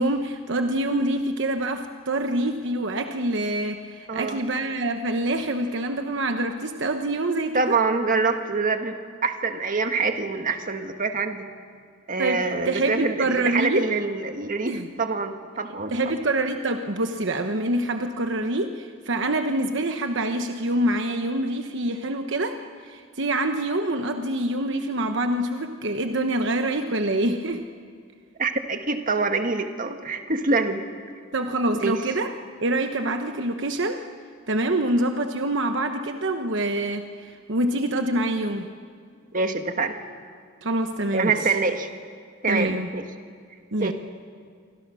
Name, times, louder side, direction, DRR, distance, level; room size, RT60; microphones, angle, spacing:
voice 1, 0.0-7.8 12.2-13.9 14.6-14.9 15.9-22.6 22.8-27.6 31.3-32.3 32.6-34.0 34.5-38.7 40.6-41.4 42.5-42.9 43.7-43.9, right 1 dB, 65° right, 6 dB, 1.1 m, -26 dB
voice 2, 4.1-4.4 7.5-9.0 9.2-11.5 12.1-16.0 28.4-30.8 31.8-32.0 39.3-40.0 41.1-41.9 42.4-43.0 43.8-43.9, right 3 dB, 45° right, 6 dB, 1.6 m, -25 dB
28.0 x 25.0 x 6.3 m, 2.1 s
head